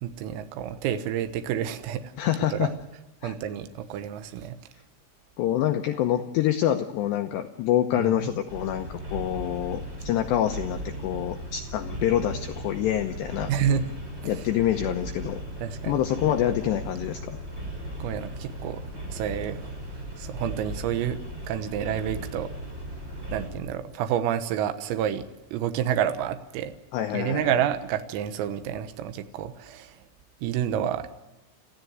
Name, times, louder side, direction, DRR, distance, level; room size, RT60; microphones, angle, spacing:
voice 1, 0.0-2.1 2.5-2.7 3.2-4.6 8.0-8.3 13.5-13.8 14.2-14.4 15.6-16.0 18.0-18.8 19.1-19.8 20.2-21.2 21.5-22.5 23.3-26.7 27.1-30.0 30.4-31.1, right 9 dB, 90° right, 9 dB, 3.8 m, -29 dB
voice 2, 2.2-2.7 3.2-3.3 5.4-13.5 14.2-15.4 15.9-17.4 26.9-27.6, left 11 dB, 80° left, 6 dB, 2.6 m, -26 dB
sound 1, 8.5-23.5, right 1 dB, 10° right, 5.5 m, -37 dB
29.5 x 14.5 x 9.4 m, 1.1 s
omnidirectional pair, 6.0 m